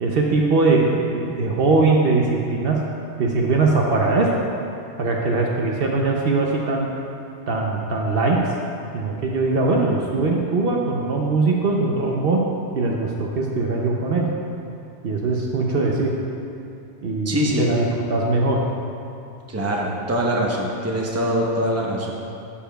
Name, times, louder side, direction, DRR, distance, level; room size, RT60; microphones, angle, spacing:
voice 1, 0.0-2.8 3.2-4.4 5.0-6.9 7.5-8.4 8.9-12.4 12.7-14.3 15.0-16.1 17.0-18.6, right 3 dB, 60° right, -1 dB, 0.8 m, -21 dB
voice 2, 17.2-17.7 19.5-22.1, equal, 15° right, -2 dB, 0.7 m, -23 dB
11.5 x 7.0 x 2.3 m, 2.6 s
omnidirectional pair, 1.2 m